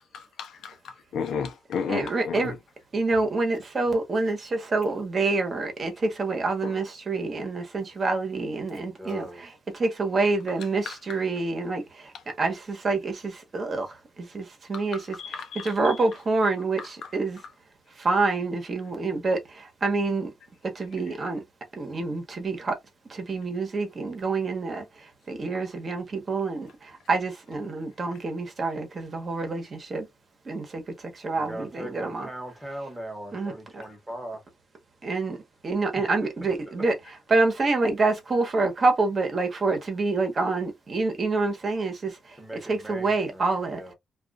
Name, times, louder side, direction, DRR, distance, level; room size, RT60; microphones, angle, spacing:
voice 1, 1.1-2.6 6.6-6.7 10.9-11.0 14.7-15.7, left 6 dB, 80° left, 0.6 m, -32 dB
voice 2, 1.9-2.5 2.9-9.3 9.7-15.2 15.5-17.4 18.0-20.3 20.6-21.4 21.8-22.8 23.1-24.8 25.3-30.1 30.4-32.3 33.3-33.8 35.0-35.4 35.6-36.9 37.3-42.4 42.7-43.8, right 3 dB, 40° right, 1.1 m, -27 dB
voice 3, 8.8-9.5 31.3-34.4 35.9-36.3 36.8-36.9 42.4-43.9, right 1 dB, 10° right, 1.2 m, -39 dB
2.4 x 2.4 x 2.3 m
cardioid pair, 105°, 0 cm